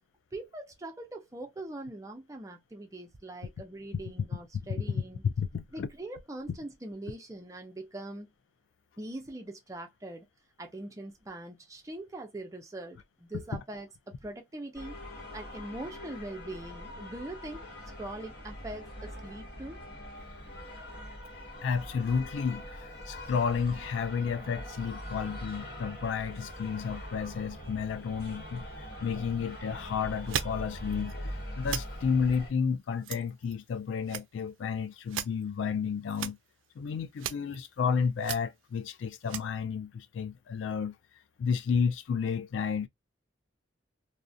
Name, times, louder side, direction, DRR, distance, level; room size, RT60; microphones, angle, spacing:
voice 1, 0.3-5.2 5.7-8.3 9.0-10.3 10.6-15.0 15.3-17.6 18.0-19.8, right 2 dB, 15° right, 0.4 m, -42 dB
voice 2, 4.5-5.9 6.5-6.6 13.5-13.6 21.6-28.6 29.0-36.4 36.8-41.0 41.4-42.9, left 6 dB, 80° left, 0.3 m, -31 dB
sound 1, 14.7-32.5, equal, 55° left, 1.0 m, -42 dB
sound 2, 30.2-30.6 30.9-31.1 31.6-31.8 32.3-32.4 33.0-33.7 34.0-34.7 34.9-35.4 36.1-36.4 36.9-37.0 37.2-37.7 38.2-38.4 39.1-39.4, right 10 dB, 90° right, 0.3 m, -36 dB
2.4 x 2.0 x 2.6 m
head